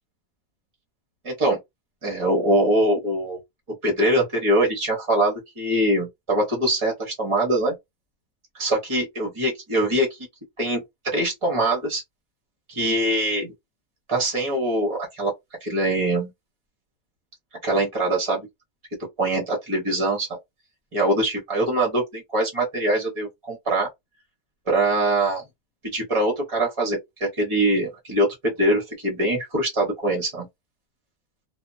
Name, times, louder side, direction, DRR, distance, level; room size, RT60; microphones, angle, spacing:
voice 1, 1.2-1.6 2.0-3.4 3.8-7.7 8.6-10.2 10.6-10.8 11.1-12.0 12.7-13.5 14.1-15.3 15.6-16.3 17.6-18.5 19.2-20.3 20.9-23.9 24.7-25.4 25.8-30.5, right 1 dB, 30° right, 0.5 m, -23 dB
2.8 x 2.1 x 2.6 m
omnidirectional pair, 1.8 m